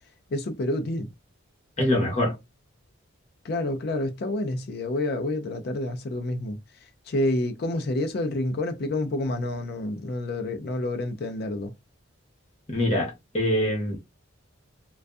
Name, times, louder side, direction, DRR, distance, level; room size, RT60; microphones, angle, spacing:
voice 1, 0.3-1.1 3.4-6.6 7.1-11.7, left 1 dB, 50° left, 0.4 m, -28 dB
voice 2, 1.8-2.4 12.7-14.0, left 1 dB, 30° left, 1.0 m, -24 dB
2.5 x 2.2 x 2.2 m
head